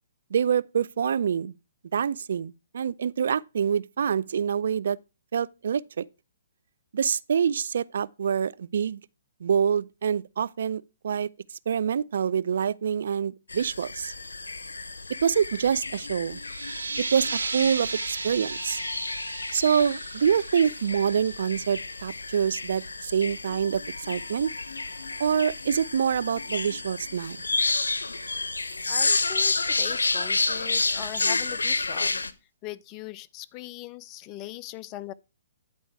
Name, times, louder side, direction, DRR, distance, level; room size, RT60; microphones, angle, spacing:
voice 1, 0.3-1.5 1.9-5.0 5.3-6.0 6.9-9.0 9.4-11.3 11.7-14.1 15.2-16.4 17.0-18.8 19.5-23.8 24.1-24.5 25.2-27.4, right 7 dB, 65° right, 0.3 m, -26 dB
sound 1, 13.5-32.3, left 3 dB, 90° left, 0.6 m, -30 dB
sound 2, 16.4-21.8, right 4 dB, 80° right, 1.2 m, -35 dB
voice 2, 28.9-32.2 32.6-35.1, left 16 dB, 30° left, 0.3 m, -40 dB
9.4 x 4.3 x 4.5 m
hypercardioid pair, 135°, 0 cm